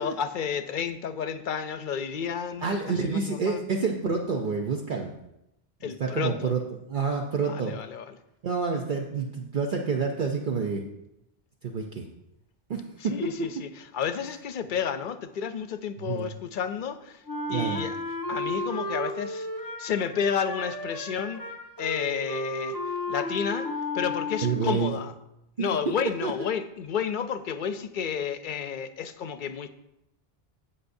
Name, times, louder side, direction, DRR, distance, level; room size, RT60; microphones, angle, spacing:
voice 1, 0.0-3.7 5.8-6.5 7.4-8.2 13.0-17.2 17.5-18.0 18.3-19.5 19.8-21.4 21.8-22.8 23.1-23.7 23.9-25.1 25.6-29.7, left 7 dB, 60° left, 11 dB, 0.7 m, -31 dB
voice 2, 2.6-5.1 5.8-6.6 6.9-7.8 8.4-10.8 11.6-12.1 12.7-12.8 16.0-16.3 17.5-17.8 24.4-24.9 25.6-25.7 26.2-26.3, right 5 dB, 55° right, 1 dB, 0.8 m, -28 dB
Wind instrument woodwind instrument, 17.3-24.8, left 1 dB, 20° left, 0.8 m, -33 dB
16.5 x 5.6 x 2.6 m, 0.87 s
omnidirectional pair, 1.1 m